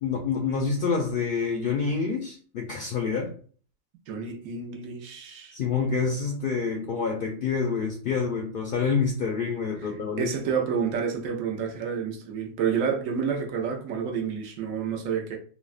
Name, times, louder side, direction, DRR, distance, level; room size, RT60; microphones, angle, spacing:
voice 1, 0.0-3.3 5.5-10.3, left 5 dB, 65° left, 0.5 m, -27 dB
voice 2, 4.1-5.6 10.2-15.4, right 7 dB, 80° right, 1.0 m, -29 dB
3.4 x 2.1 x 2.3 m
omnidirectional pair, 1.4 m